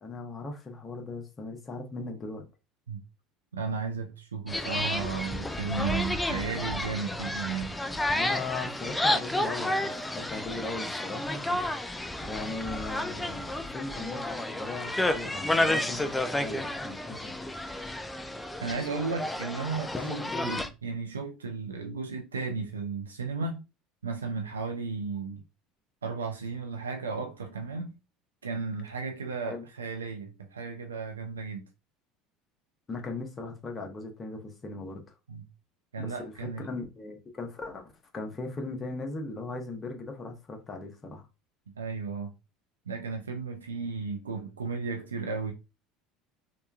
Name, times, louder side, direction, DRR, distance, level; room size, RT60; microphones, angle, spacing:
voice 1, 0.0-2.5 8.1-11.4 12.2-17.3 19.9-20.6 29.4-29.6 32.9-35.0 36.0-36.1 36.4-41.3, left 3 dB, 30° left, 0.8 m, -38 dB
voice 2, 3.5-7.8 18.6-23.6 24.0-25.4 26.0-27.9 28.4-31.7 35.3-35.4 35.9-36.7 41.8-42.3 42.9-45.5, right 4 dB, 90° right, 0.3 m, -34 dB
sound 1, 4.5-20.7, left 1 dB, 10° left, 0.4 m, -31 dB
2.8 x 2.2 x 2.4 m
hypercardioid pair, 70°, 0 cm